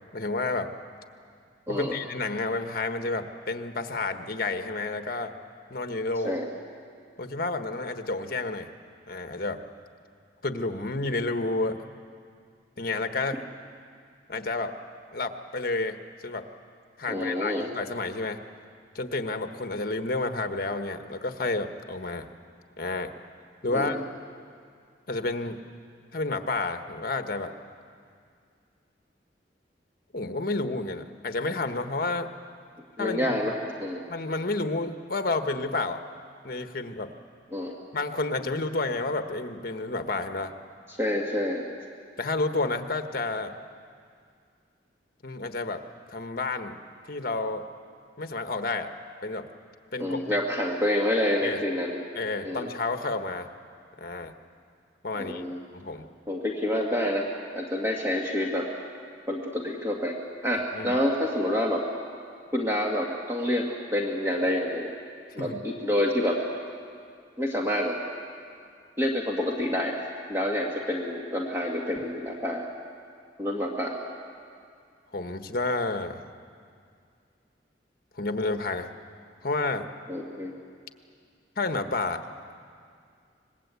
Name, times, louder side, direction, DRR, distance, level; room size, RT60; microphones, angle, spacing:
voice 1, 0.1-0.7 1.7-5.3 5.7-6.3 7.2-8.7 9.1-9.6 10.4-11.8 12.8-13.4 14.3-14.8 15.1-16.0 16.2-16.5 17.0-18.4 18.9-22.3 22.8-23.1 23.6-24.0 25.1-25.6 26.1-27.5 30.1-32.3 33.0-33.4 34.1-36.0 36.4-37.1 37.9-40.5 42.2-43.5 45.2-45.8 46.1-46.8 47.1-47.7 48.2-48.9 49.2-49.5 49.9-50.4 51.4-51.6 52.1-53.5 54.0-54.3 55.0-55.4 55.7-56.1 60.7-60.9 65.4-65.6 75.1-76.2 78.2-78.9 79.4-79.9 81.6-82.2, left 3 dB, 55° left, 7 dB, 1.3 m, -30 dB
voice 2, 17.1-17.7 23.7-24.0 33.0-33.5 33.8-34.0 37.5-37.8 41.0-41.6 50.0-52.0 52.4-52.7 55.1-55.6 56.3-57.3 57.5-58.7 59.3-60.2 60.4-61.8 62.5-64.9 65.3-66.4 67.4-68.0 69.0-70.0 70.3-72.6 73.4-74.0 80.1-80.5, left 1 dB, 15° right, -1 dB, 1.9 m, -27 dB
25.5 x 21.0 x 8.4 m, 2.2 s
head